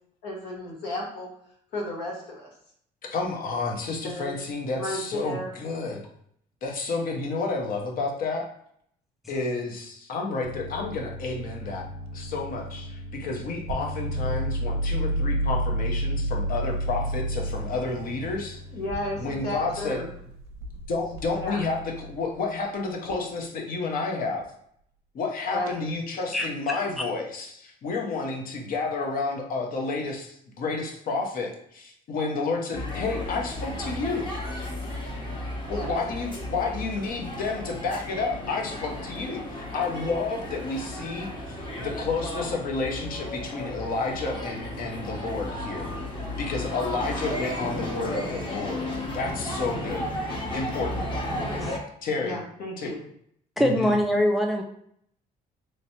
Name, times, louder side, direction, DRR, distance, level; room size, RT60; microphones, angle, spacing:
voice 1, 0.2-1.3 1.7-2.5 4.0-4.4 4.7-5.5 18.7-20.1 21.4-21.6 25.5-25.8 35.7-35.9 51.5-51.7 52.2-53.0, left 1 dB, 75° left, -2 dB, 1.2 m, -33 dB
voice 2, 3.1-6.0 6.6-8.5 9.3-11.9 12.1-18.6 19.2-20.0 20.9-24.4 25.1-34.3 35.6-45.9 46.4-48.9 49.1-50.1 50.5-51.0 52.0-52.4 52.8-52.9 53.6-54.0, left 3 dB, 55° left, 1 dB, 0.9 m, -30 dB
sound 1, 10.4-22.2 23.1-23.4, right 1 dB, 80° right, 0.6 m, -31 dB
sound 2, 32.7-51.8, left 1 dB, 30° left, 1.0 m, -34 dB
voice 3, 53.6-54.6, equal, ahead, 2 dB, 0.3 m, -23 dB
3.2 x 2.9 x 2.8 m, 0.68 s
cardioid pair, 110°, 17 cm